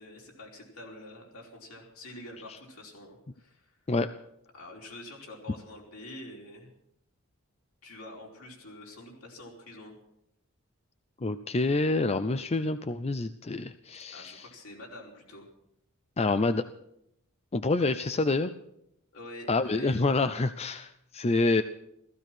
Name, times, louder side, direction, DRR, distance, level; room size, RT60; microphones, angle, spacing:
voice 1, 0.0-3.8 4.5-6.7 7.8-10.0 14.1-15.5 19.1-20.0, left 1 dB, 70° left, -1 dB, 4.6 m, -46 dB
voice 2, 11.2-14.5 16.2-16.6 17.5-18.5 19.5-21.6, left 3 dB, 30° left, 11 dB, 0.5 m, -27 dB
15.5 x 15.5 x 6.1 m, 0.77 s
head